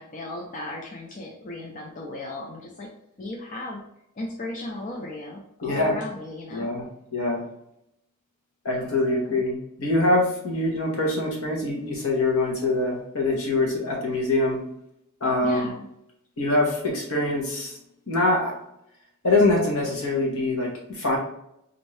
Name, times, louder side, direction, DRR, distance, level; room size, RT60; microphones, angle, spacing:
voice 1, 0.0-2.9 3.2-3.8 4.2-6.7 9.2-9.4 15.4-15.9, left 2 dB, 35° left, -2 dB, 0.5 m, -36 dB
voice 2, 5.6-5.9 6.5-7.4 8.6-14.6 15.2-15.7 16.4-17.8 18.1-18.5 19.2-21.2, left 2 dB, 65° left, -1 dB, 1.2 m, -24 dB
4.2 x 2.6 x 3.3 m, 0.79 s
head